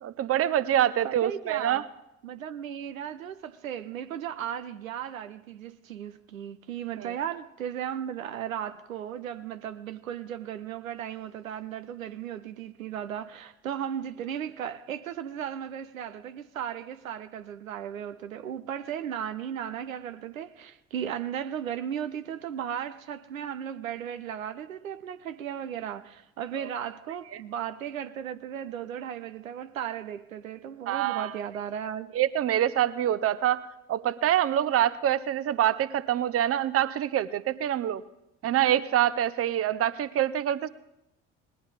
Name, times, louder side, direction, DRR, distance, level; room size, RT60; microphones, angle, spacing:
voice 1, 0.0-1.8 7.0-7.1 26.6-26.7 27.3-27.4 30.9-31.3 32.1-38.0 38.4-40.7, right 11 dB, 35° right, 0.7 m, -26 dB
voice 2, 1.0-1.9 2.2-32.2, right 9 dB, 85° right, 0.5 m, -36 dB
19.5 x 11.5 x 3.5 m
figure-of-eight pair, 50°, 39 cm